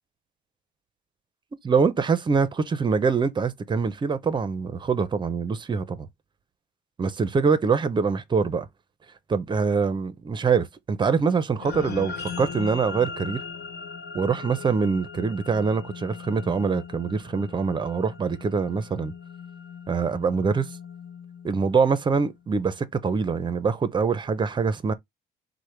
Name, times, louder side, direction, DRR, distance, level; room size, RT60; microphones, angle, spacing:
voice 1, 1.6-6.1 7.0-8.7 9.3-13.4 14.1-19.1 19.9-20.7 21.4-24.9, right 5 dB, 25° right, 0.6 m, -24 dB
sound 1, 11.6-22.2, left 5 dB, 70° left, 1.1 m, -39 dB
4.8 x 2.1 x 4.4 m
cardioid pair, 110°, 17 cm